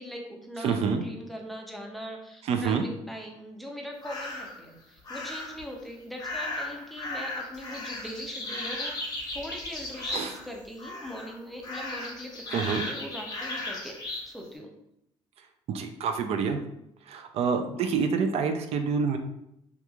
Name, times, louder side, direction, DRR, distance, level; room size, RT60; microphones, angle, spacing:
voice 1, 0.0-14.7, equal, ahead, 0 dB, 0.5 m, -41 dB
voice 2, 0.6-1.0 2.5-2.8 10.1-10.3 12.5-12.9 15.7-16.6 17.1-19.2, right 5 dB, 55° right, 7 dB, 0.4 m, -27 dB
sound 1, 4.0-4.6 5.1-5.6 6.2-10.5 10.8-11.3 11.6-14.3, left 2 dB, 35° left, 0.7 m, -36 dB
2.8 x 2.3 x 2.3 m, 0.79 s
cardioid pair, 95°, 12 cm